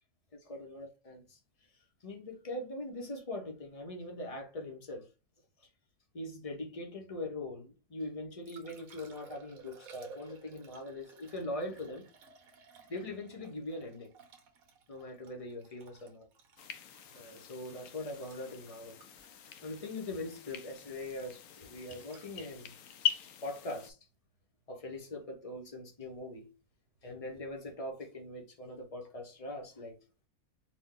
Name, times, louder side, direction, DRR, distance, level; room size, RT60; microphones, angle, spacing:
voice 1, 0.3-1.4 2.0-5.1 6.1-12.1 12.9-14.1 14.9-16.3 17.1-19.0 19.6-22.7 23.4-24.0 24.7-26.5 27.0-30.0, left 1 dB, 30° left, 0.8 m, -42 dB
Liquid, 8.0-24.1 27.0-27.1, right 5 dB, 70° right, 1.3 m, -57 dB
sound 1, 16.6-23.9, left 9 dB, 70° left, 0.9 m, -41 dB
4.3 x 2.3 x 3.7 m
omnidirectional pair, 1.5 m